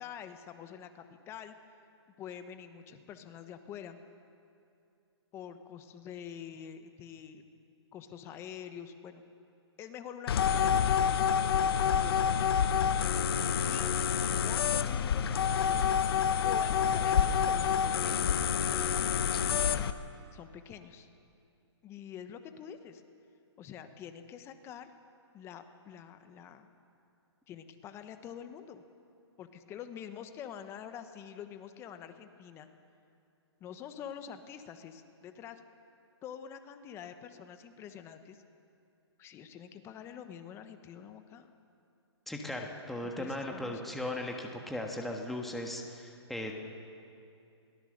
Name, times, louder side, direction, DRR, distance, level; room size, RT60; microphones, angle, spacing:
voice 1, 0.0-1.5 2.2-4.0 5.3-7.5 7.9-9.2 9.8-10.9 12.0-12.6 13.4-13.9 14.3-15.8 16.4-18.7 20.3-21.1 21.8-23.0 23.6-24.9 25.3-26.7 27.5-28.8 29.4-32.7 33.6-35.6 36.2-38.4 39.2-41.5 43.0-44.0, left 8 dB, 15° left, 9 dB, 1.1 m, -46 dB
sound 1, 10.3-19.9, left 8 dB, 55° left, 1.0 m, -28 dB
voice 2, 42.3-46.6, left 1 dB, ahead, 1 dB, 1.5 m, -37 dB
23.0 x 18.5 x 6.6 m, 2.6 s
hypercardioid pair, 150°, 15 cm